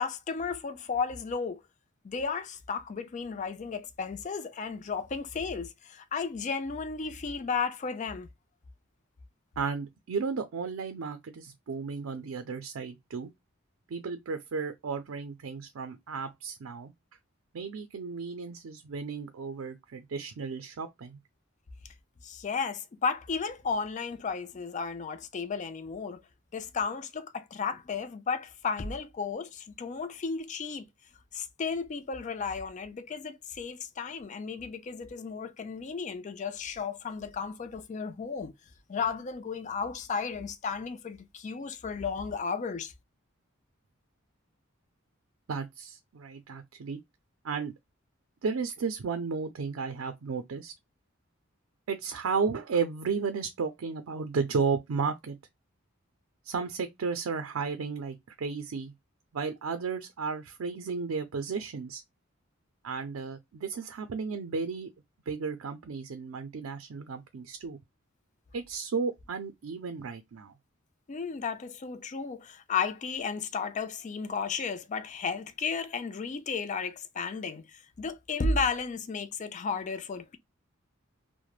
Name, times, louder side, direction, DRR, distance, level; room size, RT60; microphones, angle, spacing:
voice 1, 0.0-1.6 2.0-8.3 22.2-26.2 26.5-30.8 31.3-38.5 38.9-42.9 71.1-80.4, left 5 dB, 35° left, 0.4 m, -34 dB
voice 2, 9.6-13.3 13.9-16.9 17.5-21.2 45.5-47.0 47.4-47.7 48.4-50.7 51.9-55.4 56.4-58.9 59.3-62.0 62.8-64.9 65.3-67.8 68.5-70.5, right 5 dB, 80° right, 0.4 m, -33 dB
3.1 x 2.1 x 2.2 m
head